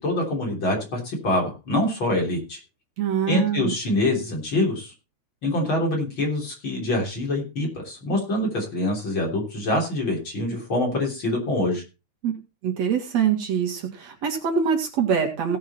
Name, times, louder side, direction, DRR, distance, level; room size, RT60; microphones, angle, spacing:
voice 1, 0.0-2.6 3.3-4.9 5.4-11.8, left 1 dB, 40° left, 0 dB, 4.0 m, -25 dB
voice 2, 3.0-3.8 12.2-12.4 12.6-15.6, right 7 dB, 65° right, 2 dB, 3.1 m, -24 dB
17.5 x 6.3 x 4.3 m, 0.30 s
omnidirectional pair, 3.3 m